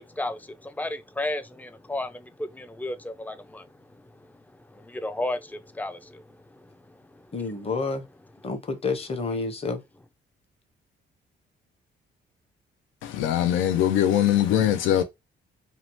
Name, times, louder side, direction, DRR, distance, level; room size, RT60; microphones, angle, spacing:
voice 1, 0.0-3.7 4.2-4.3 4.7-6.4 6.9-7.7, left 1 dB, 10° left, 0.3 m, -34 dB
voice 2, 7.3-8.0 8.4-9.8, left 4 dB, 30° left, 0.7 m, -29 dB
voice 3, 13.0-15.0, left 11 dB, 85° left, 0.4 m, -22 dB
2.8 x 2.0 x 2.9 m
cardioid pair, 90°, 20 cm